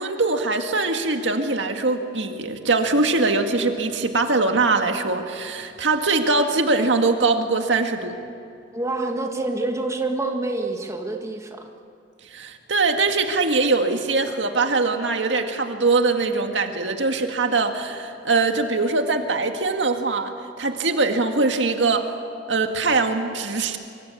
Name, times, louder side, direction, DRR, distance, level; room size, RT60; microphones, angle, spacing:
voice 1, 0.0-8.1 12.3-22.1 22.5-23.8, right 3 dB, 85° right, 5 dB, 2.0 m, -22 dB
voice 2, 8.7-11.7, right 2 dB, 15° right, 3 dB, 1.9 m, -27 dB
25.0 x 24.5 x 8.5 m, 2.6 s
head